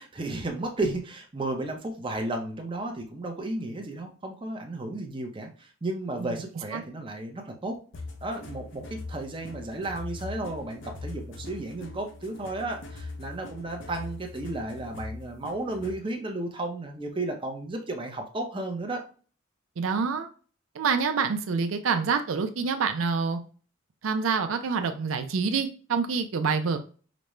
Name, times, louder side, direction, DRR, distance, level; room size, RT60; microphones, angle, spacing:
voice 1, 0.0-7.8 8.2-19.0, right 2 dB, 25° right, 2 dB, 0.6 m, -33 dB
sound 1, 7.9-16.1, left 3 dB, 70° left, 0.7 m, -41 dB
voice 2, 19.8-20.3 20.8-23.4 24.0-26.8, right 5 dB, 90° right, 7 dB, 0.5 m, -27 dB
5.1 x 2.2 x 3.0 m, 0.39 s
head